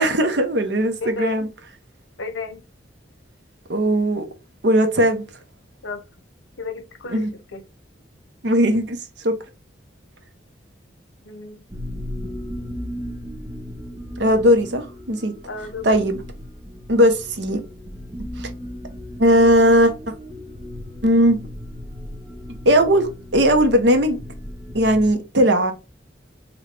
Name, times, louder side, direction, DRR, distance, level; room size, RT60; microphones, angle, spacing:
voice 1, 0.0-1.5 3.7-4.2 4.6-5.2 7.1-7.3 8.4-9.3 14.2-15.3 15.8-16.2 16.9-17.6 18.4-18.5 19.2-19.9 21.0-21.4 22.6-24.2 24.7-25.7, equal, 65° right, 0.9 m, -18 dB
voice 2, 1.0-1.5 2.2-2.6 5.8-6.0 6.6-7.6 11.2-11.6 15.5-15.9, left 4 dB, 85° left, 0.8 m, -33 dB
sound 1, 11.7-25.1, left 1 dB, 20° right, 1.6 m, -36 dB
3.9 x 3.1 x 3.3 m
head